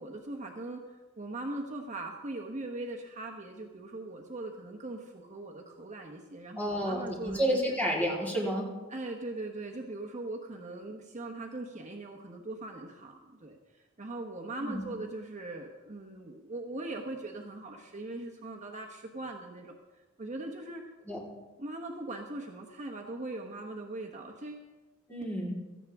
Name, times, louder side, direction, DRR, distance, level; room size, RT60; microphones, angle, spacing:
voice 1, 0.0-7.8 8.9-20.8 21.6-24.7, right 2 dB, 35° right, 2 dB, 1.1 m, -40 dB
voice 2, 6.6-8.7 14.6-14.9 21.1-21.2 25.1-25.6, equal, 10° left, -5 dB, 3.7 m, -30 dB
17.5 x 14.0 x 3.6 m, 1.2 s
head